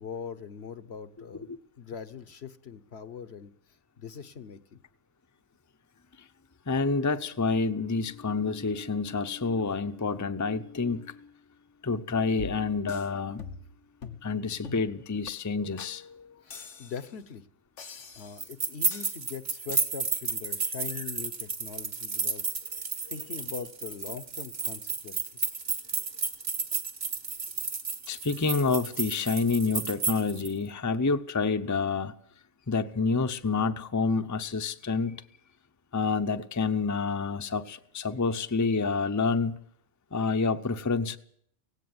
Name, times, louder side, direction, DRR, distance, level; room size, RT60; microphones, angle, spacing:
voice 1, 0.0-1.5 1.8-3.5 4.0-4.8 16.4-17.5 17.8-22.4 23.1-25.6, left 6 dB, 65° left, 1.3 m, -41 dB
voice 2, 6.7-11.3 11.8-13.4 14.2-16.4 23.1-23.2 28.1-32.1 32.7-35.2 35.9-39.6 40.1-41.2, left 4 dB, 20° left, 0.7 m, -28 dB
sound 1, 12.4-13.1 13.4-13.7 14.0-14.3 14.6-14.9 15.3-15.4 15.8-15.9 16.5-17.1 17.8-18.5 18.9-19.2 19.7-19.8, left 5 dB, 90° left, 1.7 m, -43 dB
sound 2, 18.4-30.5, right 4 dB, 60° right, 1.9 m, -32 dB
18.0 x 16.5 x 9.6 m
omnidirectional pair, 1.2 m